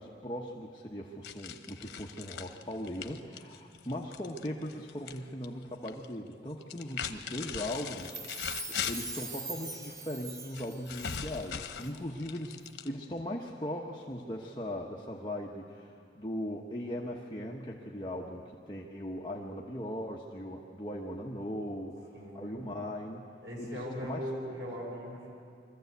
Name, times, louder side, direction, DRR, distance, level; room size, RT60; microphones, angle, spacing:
voice 1, 0.0-8.6 8.9-12.6 12.8-23.2 23.6-24.3, left 1 dB, 25° left, -3 dB, 1.1 m, -39 dB
sound 1, 1.2-5.2 5.4-6.1 6.6-9.3 10.5-13.2, left 7 dB, 85° left, 0.9 m, -40 dB
Chime, 7.9-11.5 11.8-11.9, right 3 dB, 20° right, 0.9 m, -42 dB
voice 2, 22.1-22.7 23.4-25.3, equal, 80° right, -3 dB, 6.5 m, -39 dB
23.5 x 14.5 x 8.1 m, 2.3 s
head